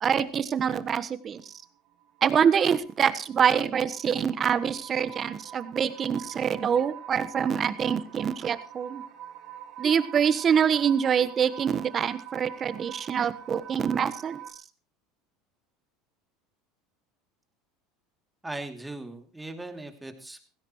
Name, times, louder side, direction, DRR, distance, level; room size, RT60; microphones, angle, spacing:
voice 1, 0.0-1.5 2.2-9.0 9.8-14.4, right 7 dB, 35° right, 14 dB, 1.3 m, -25 dB
sound 1, 1.2-14.5, right 10 dB, 55° right, 2.0 m, -45 dB
voice 2, 18.4-20.4, right 2 dB, 10° right, 5 dB, 2.8 m, -39 dB
18.0 x 16.0 x 3.1 m, 0.36 s
hypercardioid pair, 80°, 0 cm